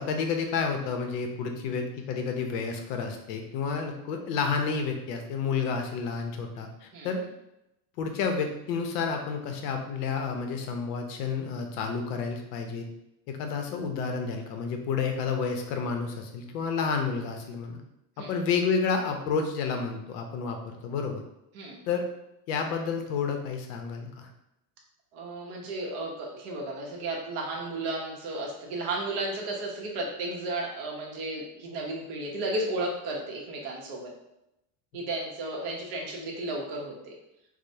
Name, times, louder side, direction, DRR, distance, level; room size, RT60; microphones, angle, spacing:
voice 1, 0.0-7.2 8.0-12.9 13.3-17.8 18.3-20.6 20.8-21.2 21.9-22.0 22.5-24.3, left 5 dB, 85° left, 4 dB, 0.8 m, -30 dB
voice 2, 25.1-34.1 34.9-37.1, right 2 dB, 55° right, -1 dB, 1.0 m, -34 dB
4.8 x 2.1 x 2.7 m, 0.86 s
cardioid pair, 165°, 46 cm